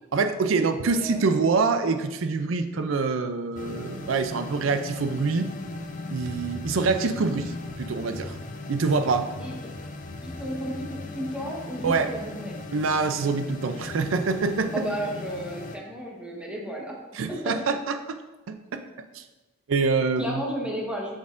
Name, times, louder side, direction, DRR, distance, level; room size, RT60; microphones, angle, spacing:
voice 1, 0.1-5.5 6.1-8.4 8.7-9.3 11.8-12.1 12.7-14.7 17.1-18.2 18.5-18.8 19.1-19.2 19.7-20.4, right 4 dB, 90° right, 8 dB, 0.5 m, -25 dB
voice 2, 0.9-1.4 9.4-9.5 10.2-12.6 14.7-16.9 17.3-17.8 20.2-21.2, equal, 5° right, -3 dB, 1.2 m, -33 dB
sound 1, 3.6-15.8, left 2 dB, 40° left, 0.6 m, -38 dB
7.0 x 6.3 x 2.5 m, 1.1 s
head